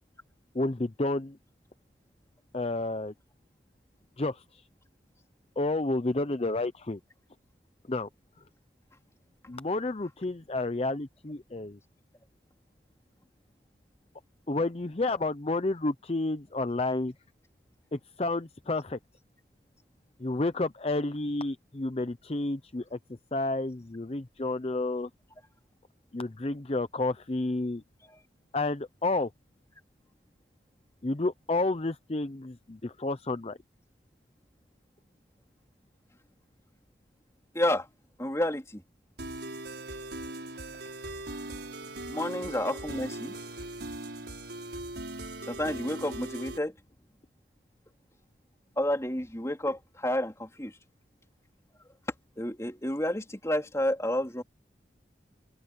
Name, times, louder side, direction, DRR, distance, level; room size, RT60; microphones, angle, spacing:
voice 1, 0.5-1.4 2.5-3.1 4.2-4.6 5.6-7.0 7.9-8.1 9.5-11.8 14.5-17.1 17.9-19.0 20.2-23.0 23.3-25.1 26.1-27.8 28.5-29.3 31.0-33.6, left 2 dB, 35° left, 0.7 m, -30 dB
voice 2, 37.5-37.9 38.2-38.8 42.1-43.3 45.5-46.7 48.8-50.7 52.4-54.4, left 1 dB, 15° left, 3.7 m, -30 dB
sound 1, 39.2-46.6, right 2 dB, 75° right, 5.6 m, -39 dB
open air
head